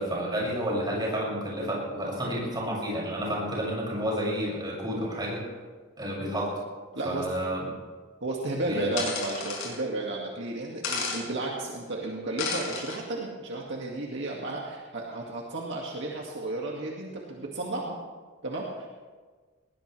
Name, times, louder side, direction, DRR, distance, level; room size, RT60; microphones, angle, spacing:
voice 1, 0.0-5.4 6.0-6.5 7.0-7.7 8.7-8.9, equal, 20° right, -4 dB, 6.6 m, -30 dB
voice 2, 6.9-7.3 8.2-18.0 18.4-18.9, right 2 dB, 60° right, -2 dB, 2.1 m, -33 dB
sound 1, 9.0-9.7 10.8-11.2 12.4-13.0, left 4 dB, 75° left, 5.8 m, -32 dB
20.0 x 20.0 x 3.4 m, 1.4 s
head